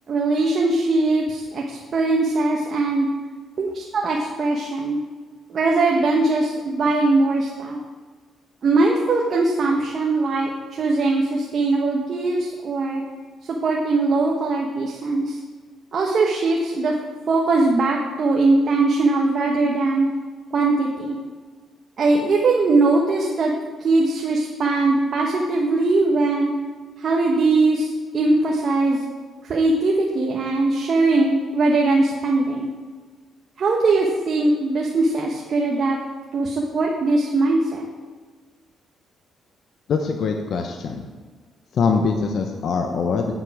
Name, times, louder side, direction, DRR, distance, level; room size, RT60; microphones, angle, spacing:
voice 1, 0.1-3.1 3.6-5.0 5.5-7.8 8.6-13.0 13.6-15.4 15.9-16.9 17.3-20.1 20.5-21.2 22.0-23.5 23.8-26.5 27.0-29.0 29.4-32.7 33.6-36.0 36.3-37.9, right 3 dB, 50° right, -1 dB, 1.2 m, -20 dB
voice 2, 39.9-41.0 41.7-43.3, left 5 dB, 65° left, 4 dB, 0.9 m, -23 dB
9.0 x 7.5 x 4.9 m, 1.5 s
cardioid pair, 90°, 0 cm